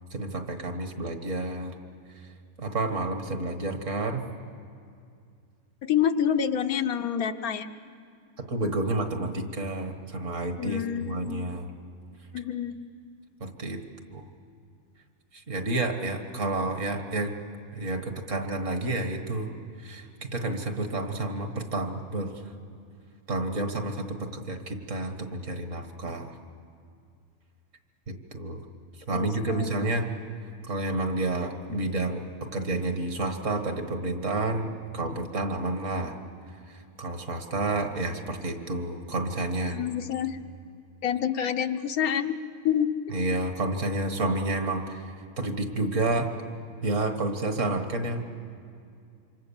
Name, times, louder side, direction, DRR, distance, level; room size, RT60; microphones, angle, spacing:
voice 1, 0.1-1.7 2.6-4.2 8.4-11.7 13.4-13.8 14.1-14.2 15.3-17.4 17.7-19.5 19.8-22.4 23.3-26.4 28.1-28.6 29.1-30.1 30.6-36.1 37.0-39.8 43.1-45.0 45.4-46.3 46.8-48.2, right 2 dB, 60° right, 6 dB, 2.1 m, -30 dB
voice 2, 5.8-7.7 10.6-11.3 12.3-12.8 29.1-29.7 39.7-40.4 41.0-42.4 42.6-42.9, left 9 dB, 85° left, 7 dB, 1.4 m, -27 dB
27.0 x 25.0 x 7.2 m, 2.4 s
omnidirectional pair, 1.5 m